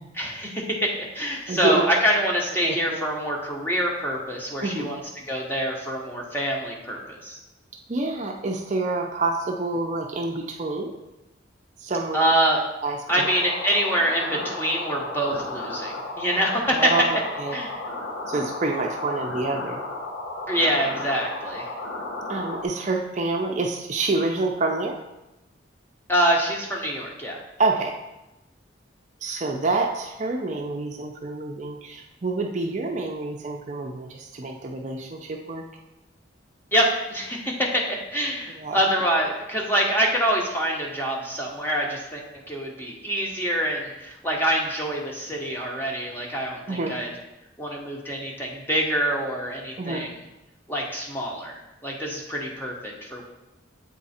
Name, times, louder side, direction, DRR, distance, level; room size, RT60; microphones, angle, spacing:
voice 1, 0.1-5.0 5.3-7.4 12.1-12.6 13.1-16.9 17.5-17.7 20.5-21.7 26.1-27.4 36.7-47.1 47.6-50.1 50.7-53.2, equal, 10° left, -1 dB, 0.9 m, -25 dB
voice 2, 1.5-1.8 2.6-2.8 4.6-4.9 7.9-10.9 11.8-12.3 12.8-13.3 14.3-14.5 16.7-17.6 18.3-19.8 22.3-25.0 27.6-27.9 29.2-35.6 38.5-38.8 46.7-47.0 49.8-50.1, right 3 dB, 40° right, 1 dB, 0.5 m, -27 dB
sound 1, 13.1-22.7, left 2 dB, 80° left, 1.2 m, -34 dB
7.7 x 3.7 x 4.2 m, 0.97 s
head